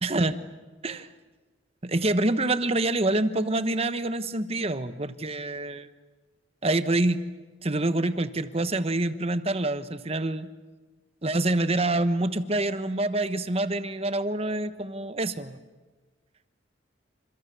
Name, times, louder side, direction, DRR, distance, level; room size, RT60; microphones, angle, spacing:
voice 1, 0.0-0.4 0.8-1.1 1.8-5.9 6.6-7.2 7.6-10.5 11.2-15.6, right 2 dB, 30° right, 11 dB, 1.2 m, -26 dB
30.0 x 27.5 x 6.9 m, 1.3 s
head